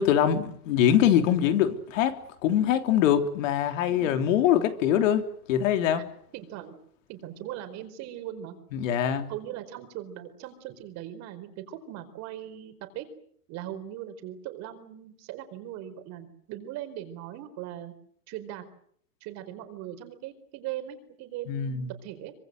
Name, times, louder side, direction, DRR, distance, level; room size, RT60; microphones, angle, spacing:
voice 1, 0.0-6.0 8.7-9.3 21.5-21.9, left 10 dB, 50° left, 8 dB, 3.4 m, -23 dB
voice 2, 3.9-4.3 6.0-6.1 6.3-6.7 7.1-8.6 9.3-13.1 13.5-17.9 18.3-18.6 19.2-22.3, right 12 dB, 35° right, 9 dB, 4.5 m, -39 dB
25.5 x 25.0 x 7.9 m, 0.64 s
hypercardioid pair, 150°, 48 cm